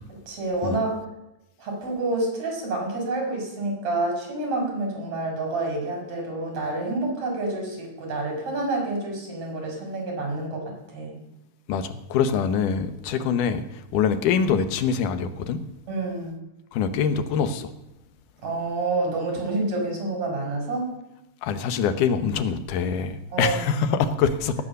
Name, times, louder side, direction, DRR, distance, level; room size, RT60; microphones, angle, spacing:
voice 1, 0.1-0.9 1.6-11.2 13.1-13.3 15.9-16.4 18.4-20.9 23.3-23.6, right 2 dB, 60° right, 1 dB, 5.8 m, -28 dB
voice 2, 11.7-13.6 13.9-15.6 16.7-17.7 21.4-24.6, left 6 dB, 90° left, 11 dB, 2.5 m, -24 dB
18.0 x 8.5 x 6.7 m, 0.95 s
omnidirectional pair, 3.5 m